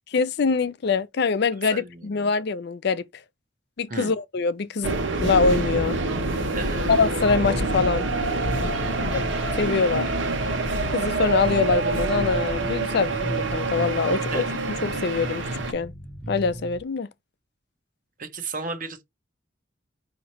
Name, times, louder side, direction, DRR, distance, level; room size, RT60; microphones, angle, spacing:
voice 1, 0.1-3.0 3.8-6.0 6.9-8.1 9.1-9.2 9.5-10.1 10.9-14.4 14.8-15.4 15.7-15.9 16.3-17.1, left 4 dB, 60° left, 0.5 m, -24 dB
sound 1, 4.8-15.7, right 2 dB, 80° right, 1.1 m, -26 dB
sound 2, 7.2-7.9 8.4-9.1 9.9-10.9 11.2-12.7 13.1-14.0 14.7-16.8, right 1 dB, 5° left, 0.8 m, -37 dB
voice 2, 8.8-9.1 14.3-14.6 18.2-19.0, right 3 dB, 45° right, 0.9 m, -34 dB
5.3 x 2.9 x 2.9 m
head